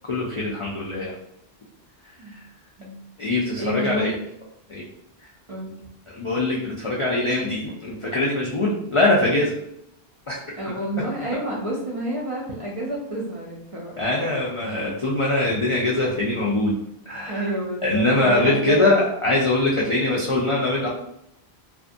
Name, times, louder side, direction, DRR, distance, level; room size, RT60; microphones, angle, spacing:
voice 1, 0.1-1.1 2.3-2.4 3.2-4.1 4.7-4.8 6.1-9.6 10.3-10.5 14.0-16.8 17.1-17.5 17.8-20.9, left 2 dB, 55° left, -4 dB, 0.3 m, -22 dB
voice 2, 3.6-4.1 5.5-5.8 10.6-14.2 17.3-18.9, right 1 dB, 45° right, -4 dB, 0.5 m, -29 dB
2.5 x 2.4 x 2.5 m, 0.77 s
omnidirectional pair, 1.1 m